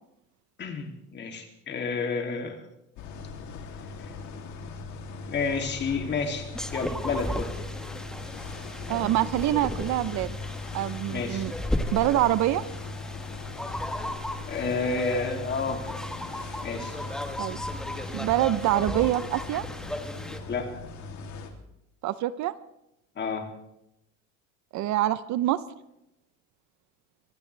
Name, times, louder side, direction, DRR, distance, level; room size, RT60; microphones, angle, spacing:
voice 1, 0.6-2.6 4.0-4.1 5.3-7.5 11.1-11.5 14.5-15.8 16.6-17.0 20.5-20.8 23.2-23.5, left 4 dB, 30° left, 4 dB, 2.7 m, -30 dB
sound 1, 2.9-21.5, left 4 dB, 55° left, 2.9 m, -39 dB
sound 2, 6.5-20.4, left 1 dB, ahead, 1.2 m, -36 dB
voice 2, 8.9-10.4 10.7-11.5 11.9-12.6 17.4-17.6 18.1-19.7 22.0-22.5 24.7-25.6, right 14 dB, 55° right, 15 dB, 0.8 m, -25 dB
24.0 x 16.5 x 3.4 m, 0.84 s
cardioid pair, 135°, 34 cm